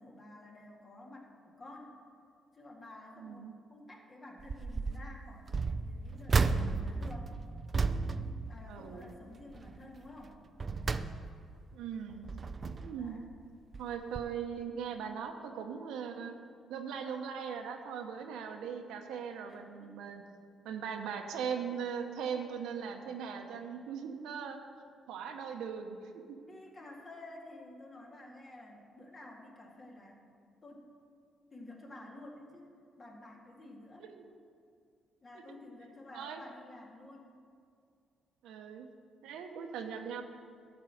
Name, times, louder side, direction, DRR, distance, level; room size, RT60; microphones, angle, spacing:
voice 1, 0.0-2.0 2.5-7.3 8.4-10.4 12.9-13.2 19.4-20.1 26.4-30.2 30.6-30.9 31.5-32.7 33.0-34.1 35.2-37.3, left 2 dB, 35° left, -1 dB, 2.2 m, -51 dB
voice 2, 3.2-3.5 8.7-9.1 11.7-12.3 12.8-13.2 13.8-16.3 16.7-20.2 20.6-24.6 25.1-26.4 34.0-34.2 35.5-35.6 36.1-36.4 38.4-38.9 39.2-40.2, right 7 dB, 90° right, 4 dB, 1.0 m, -39 dB
sound 1, 4.4-5.0 5.5-9.2 9.5-9.8 10.3-11.6 12.1-13.1 13.7-13.9 14.1-14.2, right 4 dB, 40° right, 0.4 m, -33 dB
12.0 x 4.7 x 7.8 m, 2.3 s
cardioid pair, 90°, 0 cm